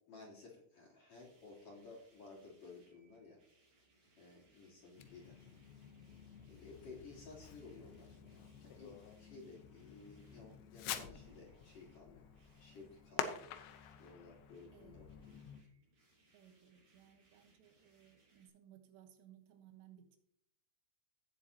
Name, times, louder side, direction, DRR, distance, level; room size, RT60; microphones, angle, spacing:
voice 1, 0.1-3.4 4.2-5.5 6.5-12.2 12.6-13.5 14.0-15.4, left 3 dB, 40° left, -5 dB, 4.1 m, -56 dB
sound 1, 1.1-18.5, right 2 dB, 40° right, 5.4 m, -73 dB
Fireworks, 5.0-15.6, left 9 dB, 85° left, 3.1 m, -48 dB
voice 2, 14.7-15.0 16.3-20.2, right 10 dB, 85° right, 6 dB, 3.3 m, -62 dB
17.5 x 7.5 x 2.8 m, 0.69 s
omnidirectional pair, 5.0 m